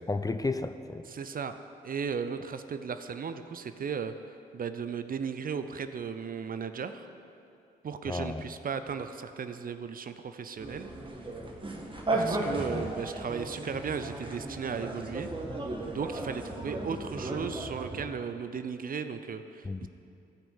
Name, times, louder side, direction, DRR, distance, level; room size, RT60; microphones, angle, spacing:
voice 1, 0.0-1.0 8.1-8.4 12.6-12.8 19.6-19.9, left 3 dB, 20° left, 9 dB, 0.6 m, -33 dB
voice 2, 1.0-1.6 1.8-4.1 4.5-7.1 7.8-10.9 12.1-15.3 15.9-19.9, right 6 dB, 50° right, 10 dB, 0.7 m, -36 dB
sound 1, 10.6-18.1, right 2 dB, 25° right, 1.6 m, -35 dB
15.5 x 5.3 x 5.5 m, 2.6 s
supercardioid pair, 50°, 19 cm